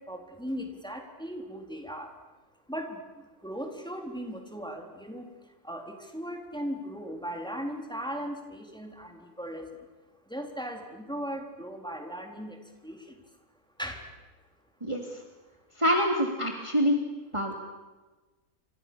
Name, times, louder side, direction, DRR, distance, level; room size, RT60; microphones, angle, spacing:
voice 1, 0.1-2.1 2.7-3.0 3.4-5.3 5.6-9.7 10.3-13.1 13.8-14.0, equal, 5° left, 2 dB, 4.1 m, -37 dB
voice 2, 14.8-15.2 15.8-17.0 17.3-17.5, equal, 20° right, 1 dB, 3.1 m, -26 dB
29.5 x 27.5 x 7.2 m, 1.2 s
omnidirectional pair, 1.6 m